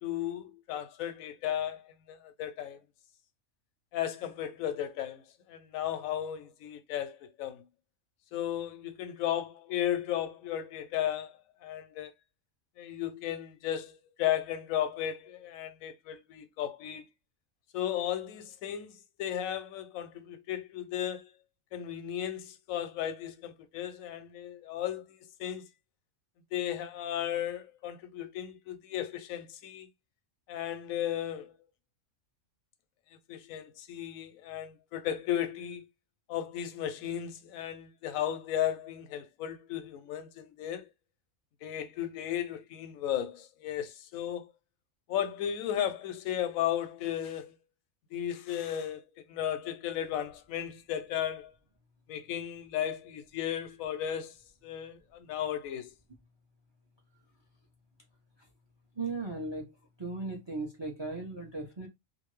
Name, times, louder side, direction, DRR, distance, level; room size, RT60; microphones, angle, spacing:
voice 1, 0.0-2.8 3.9-7.6 8.3-12.1 12.8-17.1 17.7-21.3 21.7-25.7 26.5-29.9 30.5-31.5 33.3-35.8 36.3-40.9 41.6-44.5 45.1-47.6 48.1-51.5 52.1-54.4 54.6-55.9, left 11 dB, 90° left, 1.0 m, -35 dB
voice 2, 59.0-59.7 60.0-61.9, right 3 dB, 35° right, 0.4 m, -37 dB
2.6 x 2.5 x 3.0 m
omnidirectional pair, 1.4 m